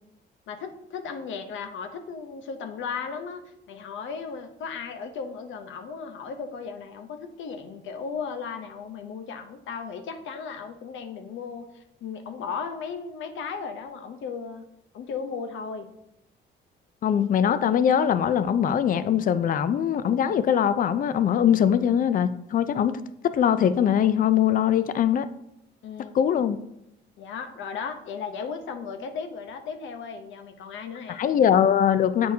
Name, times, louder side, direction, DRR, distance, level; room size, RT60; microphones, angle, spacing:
voice 1, 0.5-14.7 14.9-15.9 25.8-26.1 27.2-31.2, left 5 dB, 75° left, 7 dB, 0.8 m, -36 dB
voice 2, 17.0-25.3 26.1-26.6 31.1-32.3, left 9 dB, 45° left, 13 dB, 0.4 m, -22 dB
8.0 x 4.3 x 2.8 m, 0.81 s
cardioid pair, 90°, 20 cm